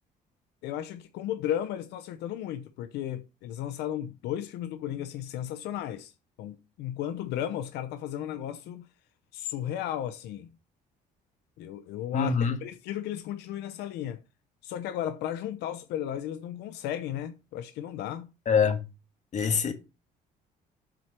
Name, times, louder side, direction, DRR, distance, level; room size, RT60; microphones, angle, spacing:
voice 1, 0.6-6.1 6.4-8.8 9.3-10.5 11.6-14.2 14.6-18.3, left 11 dB, 85° left, 0.8 m, -34 dB
voice 2, 12.1-12.6 18.5-18.8 19.3-19.7, left 6 dB, 45° left, 1.7 m, -24 dB
7.8 x 4.5 x 6.6 m
cardioid pair, 110°, 17 cm